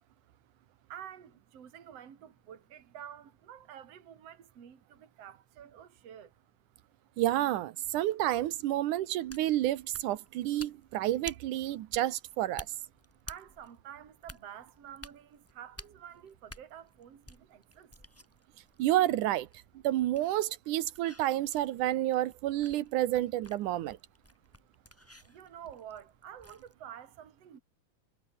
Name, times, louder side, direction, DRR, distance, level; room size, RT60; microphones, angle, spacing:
voice 1, 0.9-6.3 13.3-18.0 25.2-27.6, right 9 dB, 50° right, 3.4 m, -49 dB
voice 2, 7.2-12.7 18.8-19.5 19.8-24.0, right 14 dB, 75° right, 2.4 m, -30 dB
sound 1, 9.1-26.7, equal, 5° left, 4.0 m, -53 dB
omnidirectional pair, 3.8 m